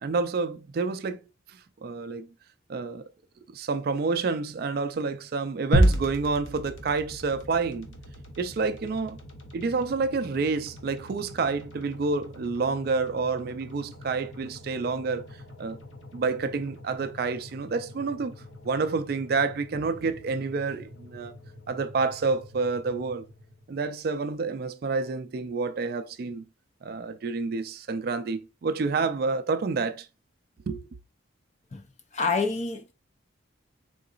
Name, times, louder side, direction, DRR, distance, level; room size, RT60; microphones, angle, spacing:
voice 1, 0.0-1.2 1.5-2.3 2.7-3.0 3.5-7.9 8.4-9.2 9.5-15.3 15.6-15.8 16.1-21.3 21.7-23.3 23.7-26.4 26.8-30.1 30.7-30.8, right 4 dB, 50° right, 0.3 m, -29 dB
sound 1, 5.7-23.9, equal, 80° left, 0.9 m, -34 dB
voice 2, 32.1-32.9, left 4 dB, 35° left, 0.5 m, -27 dB
3.8 x 3.8 x 2.4 m
head